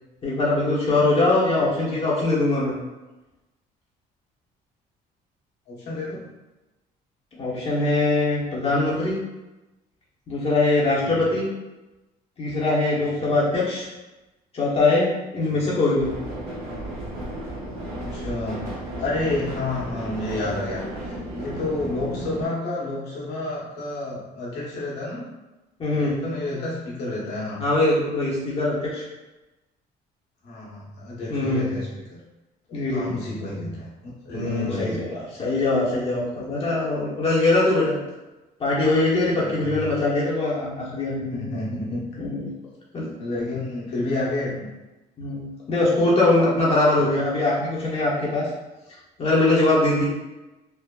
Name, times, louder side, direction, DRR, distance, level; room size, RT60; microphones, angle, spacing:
voice 1, 0.2-2.8 7.3-9.1 10.3-11.5 12.4-13.9 14.5-16.2 25.8-26.2 27.6-29.0 31.3-31.7 32.7-33.1 34.3-35.0 35.4-38.0 38.6-41.4 42.2-42.4 42.9-43.1 45.2-45.4 45.7-48.5 49.2-50.0, left 2 dB, 35° left, -6 dB, 0.8 m, -22 dB
voice 2, 5.7-6.3 11.0-11.1 13.2-13.3 15.5-15.6 17.9-25.2 25.9-27.6 30.4-32.2 32.7-33.9 34.2-35.2 39.4-39.8 41.1-42.0 43.2-44.7 46.9-47.1, left 2 dB, 80° left, -6 dB, 1.1 m, -30 dB
sound 1, 16.0-22.4, right 1 dB, 65° right, 1.0 m, -34 dB
3.4 x 2.0 x 2.2 m, 1.1 s
cardioid pair, 110°, 17 cm